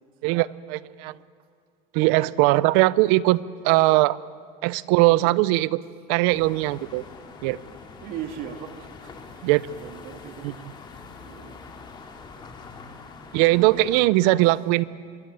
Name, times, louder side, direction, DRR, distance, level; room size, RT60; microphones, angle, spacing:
voice 1, 0.2-1.1 1.9-3.4 3.6-4.2 4.6-5.8 6.1-7.0 7.4-7.6 9.4-9.6 10.4-10.7 13.3-14.8, right 19 dB, 70° right, 20 dB, 0.7 m, -20 dB
Piano, 5.1-6.1, left 7 dB, 70° left, 7.6 m, -48 dB
sound 1, 6.3-14.1, left 4 dB, 25° left, 2.3 m, -44 dB
voice 2, 8.0-9.1 9.4-10.5 11.2-11.6 13.6-13.7, right 9 dB, 55° right, 7 dB, 1.9 m, -38 dB
24.5 x 21.5 x 9.0 m, 2.2 s
cardioid pair, 175°, 19 cm